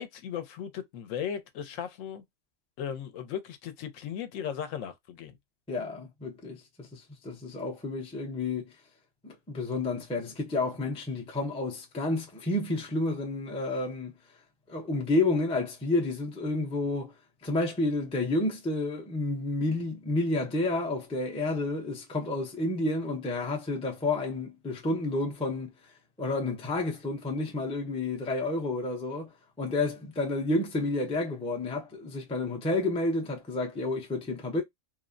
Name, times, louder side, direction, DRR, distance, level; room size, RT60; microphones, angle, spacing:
voice 1, 0.0-2.2 2.8-5.3, left 8 dB, 80° left, 1.0 m, -36 dB
voice 2, 5.7-8.7 9.2-14.1 14.7-17.1 17.4-25.7 26.2-34.6, left 2 dB, 10° left, 0.3 m, -30 dB
3.2 x 2.0 x 2.5 m
omnidirectional pair, 1.4 m